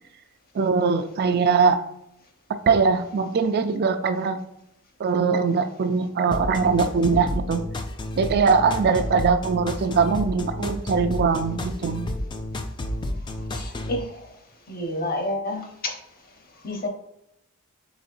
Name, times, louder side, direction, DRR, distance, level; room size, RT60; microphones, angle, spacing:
voice 1, 0.5-1.8 2.7-4.4 5.0-7.6 8.2-12.1, right 5 dB, 50° right, 9 dB, 0.4 m, -21 dB
sound 1, 6.3-14.0, left 1 dB, 20° left, 0.3 m, -31 dB
voice 2, 13.5-14.2 14.7-15.9 16.6-16.9, left 1 dB, 45° left, 3 dB, 0.8 m, -29 dB
4.1 x 3.8 x 2.6 m, 0.79 s
head